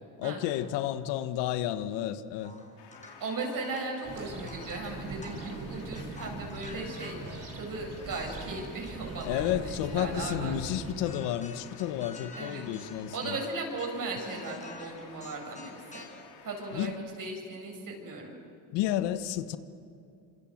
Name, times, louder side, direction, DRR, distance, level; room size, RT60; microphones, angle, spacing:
voice 1, 0.2-2.5 9.2-13.4 16.7-16.9 18.7-19.6, left 12 dB, 85° left, 1.4 m, -31 dB
sound 1, 2.4-7.7 8.1-10.7 11.0-16.2, left 2 dB, 15° left, 5.3 m, -49 dB
sound 2, 2.8-16.9, left 7 dB, 70° left, 3.6 m, -53 dB
voice 2, 3.2-10.8 12.3-12.6 13.1-16.0 16.4-16.9 17.2-18.4, right 3 dB, 50° right, 7.7 m, -37 dB
sound 3, 4.0-10.9, right 3 dB, 35° right, 4.1 m, -41 dB
26.5 x 26.0 x 7.8 m
cardioid pair, 100°, 41 cm